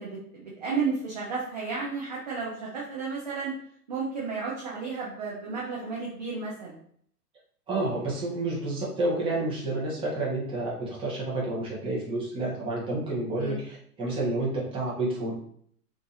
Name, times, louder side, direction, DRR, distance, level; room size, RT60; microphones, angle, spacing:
voice 1, 0.0-3.5 3.9-6.8 13.4-13.6, right 4 dB, 30° right, -4 dB, 0.3 m, -32 dB
voice 2, 7.7-15.4, right 2 dB, 10° right, -6 dB, 0.7 m, -30 dB
2.7 x 2.5 x 2.4 m, 0.63 s
figure-of-eight pair, 110°, 48 cm